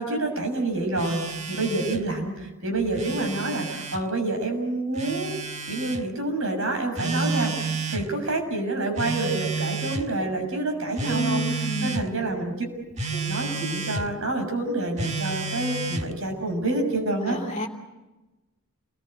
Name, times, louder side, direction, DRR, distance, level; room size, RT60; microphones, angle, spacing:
voice 1, 0.0-5.3 5.7-12.5 13.1-17.4, right 2 dB, 60° right, 4 dB, 7.0 m, -28 dB
Telephone, 1.0-2.1 2.8-4.0 5.0-6.0 7.0-8.1 9.0-10.1 11.0-12.1 13.0-14.1 15.0-16.1, right 4 dB, 30° right, 1.5 m, -30 dB
voice 2, 11.1-12.1 17.3-17.7, left 1 dB, 30° left, 2 dB, 2.9 m, -30 dB
29.5 x 21.0 x 8.1 m, 1.1 s
head